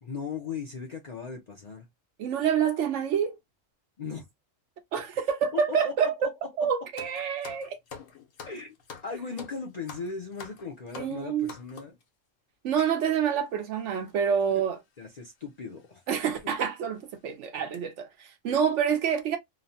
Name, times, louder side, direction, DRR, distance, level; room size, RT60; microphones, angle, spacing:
voice 1, 0.0-1.9 4.0-4.3 5.5-6.3 6.6-6.7 8.5-8.7 9.0-12.0 15.0-16.0 18.5-18.6, left 5 dB, 45° left, 0.5 m, -37 dB
voice 2, 2.2-3.4 4.9-6.3 6.6-7.8 11.0-11.5 12.6-14.8 16.1-19.4, right 7 dB, 70° right, 1.0 m, -27 dB
sound 1, 7.0-12.0 12.8-13.0 13.7-13.8 13.9-14.1 15.1-15.3 15.8-15.9 16.4-16.5 16.9-17.2 17.5-17.8, left 6 dB, 80° left, 1.2 m, -46 dB
3.0 x 2.1 x 2.6 m
omnidirectional pair, 1.3 m